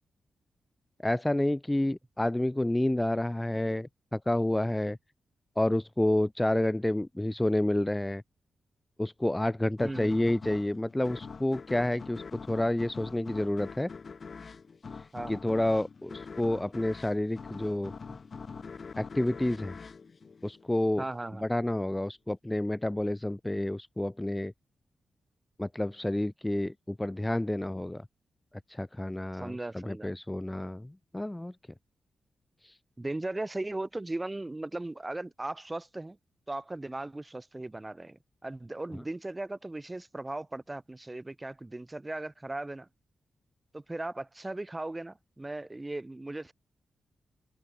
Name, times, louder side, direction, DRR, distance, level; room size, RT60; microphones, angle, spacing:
voice 1, 1.0-5.0 5.6-8.2 9.0-13.9 15.3-17.9 19.0-19.7 20.4-21.0 21.4-24.5 25.6-28.0 28.7-31.5 32.6-32.7, left 1 dB, 10° left, 1.9 m, -29 dB
sound 1, 9.8-21.0, left 5 dB, 45° left, 6.9 m, -44 dB
voice 2, 9.8-10.2 15.1-15.4 21.0-21.4 29.3-30.1 33.0-36.2 36.5-42.9 43.7-46.5, right 2 dB, 15° right, 4.0 m, -37 dB
open air
cardioid pair, 105°, 0 cm